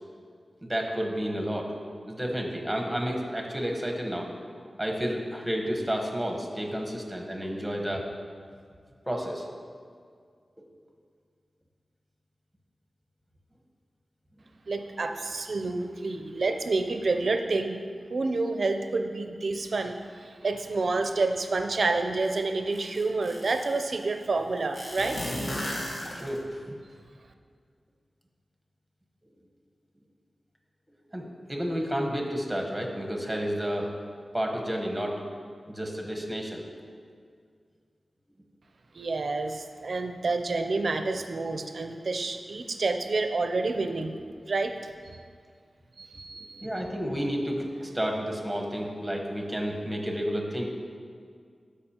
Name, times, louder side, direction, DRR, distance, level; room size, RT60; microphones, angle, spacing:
voice 1, 0.6-1.7 2.0-4.3 4.8-8.0 9.1-9.5 26.1-26.7 31.1-33.9 34.3-35.2 35.7-36.6 46.3-50.7, equal, 5° right, 1 dB, 1.1 m, -31 dB
voice 2, 14.7-17.8 18.1-25.2 38.9-44.2 44.5-44.7 46.0-46.7, right 3 dB, 60° right, 6 dB, 0.5 m, -29 dB
sound 1, 22.2-22.3 22.7-23.8 24.7-26.6, left 1 dB, 60° left, 1.4 m, -34 dB
13.5 x 5.0 x 2.9 m, 2.1 s
wide cardioid pair, 105°, 0 cm